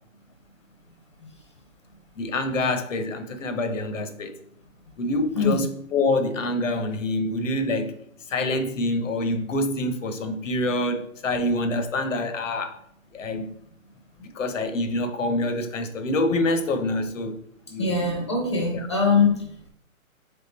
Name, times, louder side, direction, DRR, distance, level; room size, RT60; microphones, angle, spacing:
voice 1, 2.2-4.3 5.0-8.0 8.3-12.7 13.1-13.5 14.2-17.4 17.7-18.1 18.7-18.9, left 2 dB, 65° left, 0.9 m, -26 dB
voice 2, 17.8-19.7, left 4 dB, 20° left, 0.7 m, -22 dB
3.7 x 3.6 x 4.0 m
hypercardioid pair, 175°, 41 cm